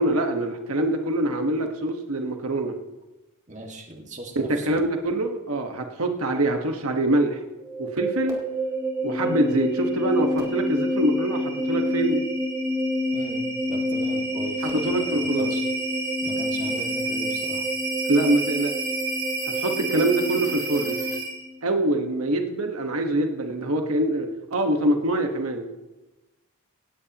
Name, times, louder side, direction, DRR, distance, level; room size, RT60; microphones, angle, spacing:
voice 1, 0.0-2.8 4.3-7.4 7.8-8.4 9.0-12.2 14.8-15.5 18.1-18.7 19.5-21.0 21.6-25.7, right 1 dB, 85° right, 4 dB, 1.4 m, -24 dB
voice 2, 3.5-4.8 13.1-15.6 16.2-17.7, right 1 dB, 35° right, 1 dB, 2.0 m, -39 dB
sound 1, 7.6-21.5, equal, 15° right, 2.8 m, -27 dB
18.0 x 16.0 x 3.0 m, 1.1 s
head